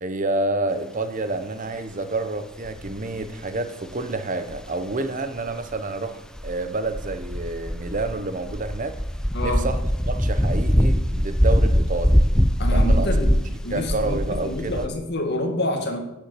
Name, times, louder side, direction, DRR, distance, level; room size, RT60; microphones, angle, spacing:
voice 1, 0.0-9.0 9.4-9.8 10.1-12.2 12.7-13.1 13.7-14.9, right 2 dB, 35° right, 9 dB, 1.0 m, -28 dB
sound 1, 2.6-3.3 4.5-4.7 5.5-5.7 6.4-14.9, equal, 5° left, 0.5 m, -22 dB
voice 2, 12.6-13.3 13.6-14.2 14.4-16.0, left 1 dB, 50° left, 3 dB, 2.1 m, -27 dB
11.5 x 7.3 x 8.2 m, 0.92 s
head